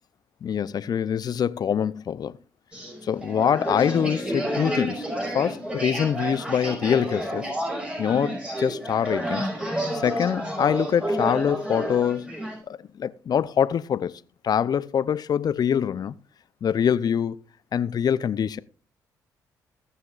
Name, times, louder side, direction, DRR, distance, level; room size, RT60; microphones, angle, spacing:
voice 1, 0.4-2.3 3.0-5.1 5.3-7.5 8.0-9.5 9.9-12.3 12.7-14.1 14.4-16.1 16.6-17.4 17.7-18.6, left 8 dB, 50° left, 0.6 m, -24 dB
sound 1, 2.7-12.6, right 1 dB, 10° right, 5.3 m, -30 dB
20.5 x 6.9 x 2.5 m
hypercardioid pair, 50°, 8 cm